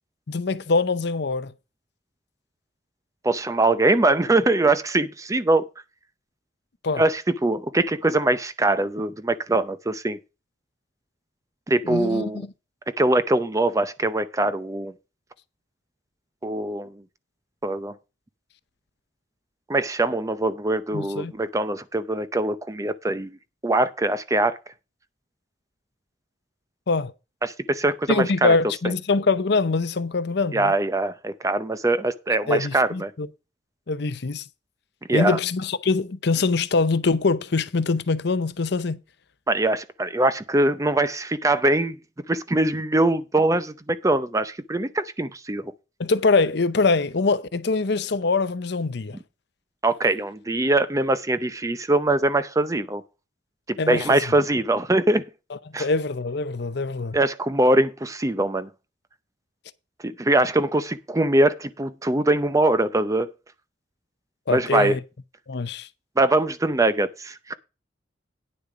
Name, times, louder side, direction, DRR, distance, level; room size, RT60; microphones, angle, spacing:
voice 1, 0.3-1.5 6.8-7.0 11.8-12.5 20.9-21.3 26.9-27.1 28.1-30.7 32.5-33.3 33.9-34.4 35.1-39.0 46.0-49.2 53.8-54.2 55.8-57.2 64.5-65.0 65.5-65.9, left 3 dB, 60° left, 0.7 m, -23 dB
voice 2, 3.2-5.7 6.9-10.2 11.7-12.5 13.0-14.9 16.4-17.0 17.6-18.0 19.7-23.4 23.6-24.6 27.4-28.6 30.5-33.1 35.1-35.4 39.5-42.0 42.3-45.7 49.8-53.0 53.7-55.2 55.7-55.9 57.1-58.7 60.0-63.3 64.5-65.0 66.2-67.5, right 2 dB, 15° right, 0.6 m, -22 dB
9.9 x 6.7 x 4.9 m
head